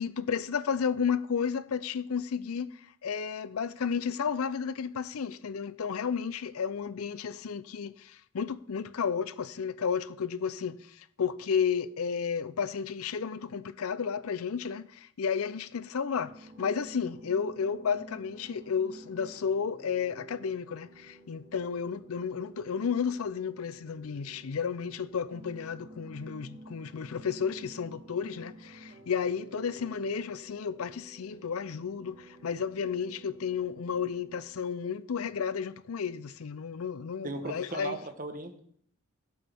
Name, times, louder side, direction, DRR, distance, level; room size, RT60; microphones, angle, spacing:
voice 1, 0.0-38.0, left 6 dB, 90° left, 0.5 m, -32 dB
sound 1, 16.2-34.5, right 1 dB, 60° right, 3.2 m, -51 dB
voice 2, 37.2-38.6, right 2 dB, 40° right, 1.2 m, -37 dB
15.5 x 7.8 x 3.6 m
head